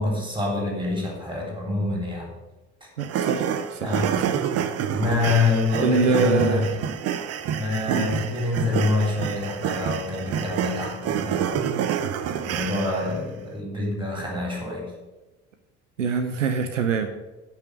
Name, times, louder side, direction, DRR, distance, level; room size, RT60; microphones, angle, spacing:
voice 1, 0.0-2.3 2.8-2.9 3.5-4.2 4.9-6.7 7.5-11.7 12.3-14.9, left 3 dB, 15° right, 0 dB, 3.5 m, -26 dB
sound 1, 3.0-13.2, right 9 dB, 40° right, 0.7 m, -28 dB
voice 2, 3.0-3.9 4.3-4.4 5.8-6.7 7.9-8.1 16.0-17.1, right 5 dB, 80° right, 7 dB, 0.7 m, -24 dB
8.4 x 5.6 x 7.9 m, 1.1 s
figure-of-eight pair, 55°, 37 cm